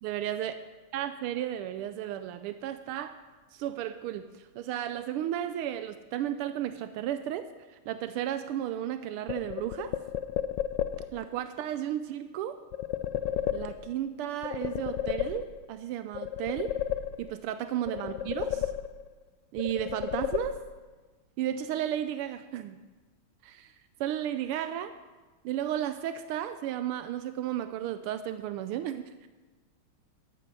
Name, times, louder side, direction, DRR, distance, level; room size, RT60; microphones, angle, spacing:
voice 1, 0.0-0.5 0.9-3.2 3.5-9.9 11.1-12.6 13.5-16.7 17.2-18.7 19.5-20.6 21.4-22.8 23.4-23.7 24.0-24.9 25.4-29.1, right 11 dB, 85° right, 10 dB, 1.5 m, -33 dB
sound 1, 9.3-11.3 12.7-14.1 14.4-15.8 16.1-17.5 17.9-19.2 19.6-20.9, left 11 dB, 75° left, 1.0 m, -33 dB
13.5 x 9.3 x 6.2 m, 1.3 s
omnidirectional pair, 2.4 m